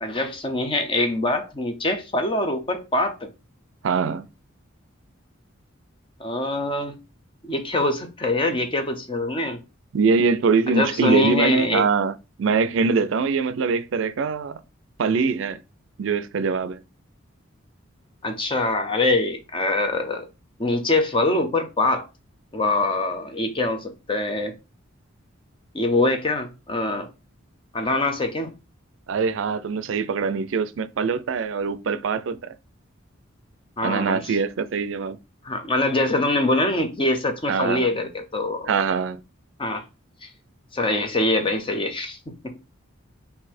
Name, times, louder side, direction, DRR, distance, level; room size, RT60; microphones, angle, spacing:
voice 1, 0.0-3.3 6.2-7.0 7.4-9.6 10.7-11.8 18.2-20.3 20.6-22.1 22.5-24.5 25.7-27.1 27.7-28.5 33.8-34.4 35.4-38.7 39.6-39.8 40.2-40.3 40.7-42.6, left 2 dB, 25° left, 0.7 m, -24 dB
voice 2, 3.8-4.3 9.9-14.6 15.0-15.6 16.0-16.8 29.1-32.5 33.8-35.2 37.5-37.9 38.7-39.2, right 5 dB, 65° right, 0.4 m, -23 dB
3.9 x 2.7 x 4.2 m
head